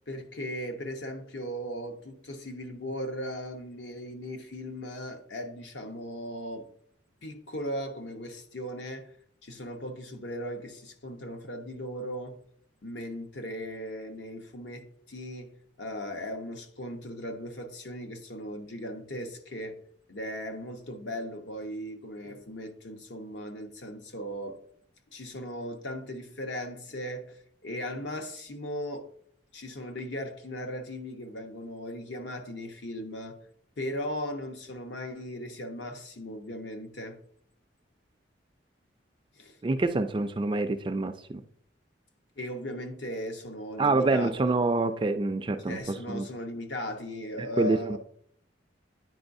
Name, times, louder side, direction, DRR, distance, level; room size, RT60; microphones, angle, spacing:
voice 1, 0.1-6.7 7.2-9.1 9.4-12.4 12.8-19.8 20.1-24.6 25.1-29.1 29.5-33.4 33.8-37.2 39.4-39.6 42.4-44.3 45.6-48.0, equal, 70° left, 1.0 m, -37 dB
voice 2, 39.6-41.4 43.8-46.2 47.6-48.0, right 3 dB, 25° right, 0.3 m, -26 dB
9.5 x 4.7 x 2.6 m
head